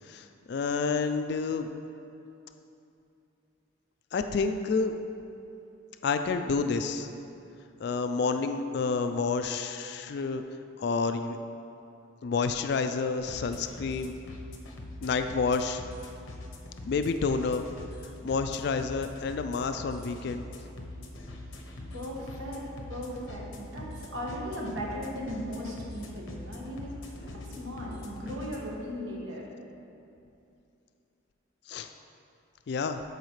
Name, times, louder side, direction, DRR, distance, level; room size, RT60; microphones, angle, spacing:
voice 1, 0.1-1.7 4.1-4.9 6.0-7.1 7.8-10.4 10.8-11.4 12.2-14.1 15.0-15.8 16.9-17.6 18.2-20.4 27.2-28.0 31.7-31.9 32.7-33.0, left 4 dB, 55° left, 8 dB, 0.3 m, -29 dB
sound 1, 13.2-28.7, left 1 dB, 80° left, 0.8 m, -43 dB
voice 2, 21.9-22.6 22.9-26.9 27.2-29.5, equal, 80° right, -4 dB, 1.5 m, -37 dB
13.5 x 4.9 x 3.2 m, 2.7 s
head